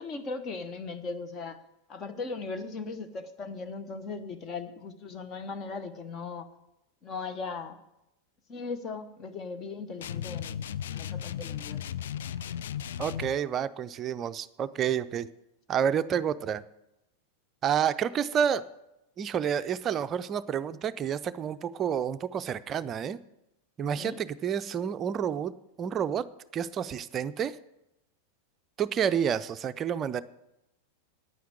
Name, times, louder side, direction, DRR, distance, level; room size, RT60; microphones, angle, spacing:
voice 1, 0.0-1.6 1.9-6.5 7.0-7.8 8.5-10.6 10.9-12.0 24.0-24.2, left 4 dB, 30° left, 10 dB, 1.2 m, -38 dB
sound 1, 10.0-13.4, left 10 dB, 60° left, 0.4 m, -36 dB
voice 2, 13.0-15.3 15.7-16.6 17.6-18.7 19.2-23.2 23.8-26.2 26.5-27.6 28.8-30.2, right 8 dB, 25° right, 13 dB, 0.5 m, -29 dB
9.7 x 9.3 x 8.1 m, 0.89 s
figure-of-eight pair, 90°, 0 cm